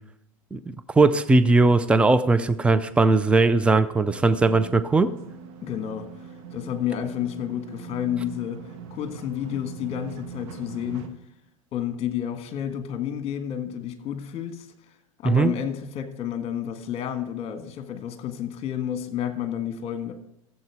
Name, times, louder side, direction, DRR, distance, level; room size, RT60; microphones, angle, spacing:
voice 1, 0.5-5.1 15.2-15.5, right 3 dB, 5° right, 0.5 m, -19 dB
sound 1, 4.1-11.1, right 6 dB, 55° right, 1.4 m, -42 dB
voice 2, 5.6-11.1 11.7-14.7 15.2-20.1, left 10 dB, 35° left, 1.6 m, -30 dB
14.5 x 7.6 x 4.8 m
hypercardioid pair, 95°, 18 cm